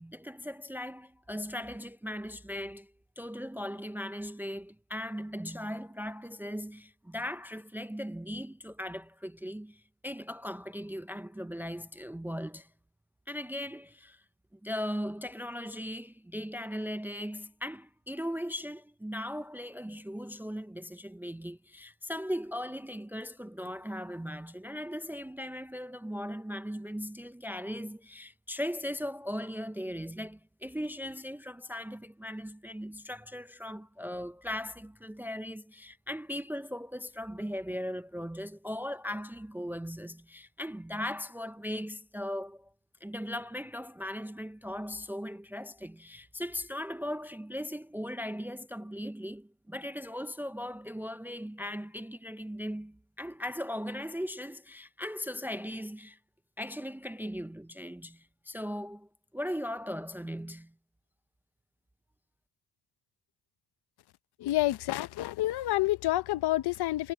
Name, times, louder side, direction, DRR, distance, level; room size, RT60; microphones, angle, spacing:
voice 1, 0.0-12.7 13.3-14.2 14.5-42.7 43.0-56.2 56.6-59.1 59.3-60.7, equal, 5° right, 0.4 m, -38 dB
voice 2, 64.4-67.1, left 16 dB, 75° left, 0.9 m, -28 dB
cardioid pair, 115°, 39 cm